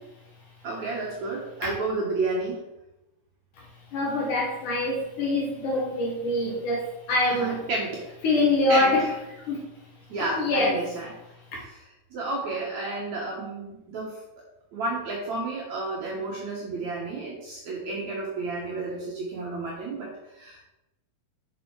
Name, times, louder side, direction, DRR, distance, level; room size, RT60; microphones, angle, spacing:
voice 1, 0.6-2.7 7.3-8.1 8.7-9.1 10.1-11.1 11.7-14.2 14.7-20.6, right 2 dB, 60° right, -3 dB, 2.1 m, -31 dB
voice 2, 3.9-7.6 8.2-9.0 9.5-9.6 10.3-10.8 11.5-11.6, left 2 dB, 55° left, -2 dB, 2.8 m, -24 dB
7.1 x 6.7 x 4.7 m, 0.93 s
omnidirectional pair, 4.7 m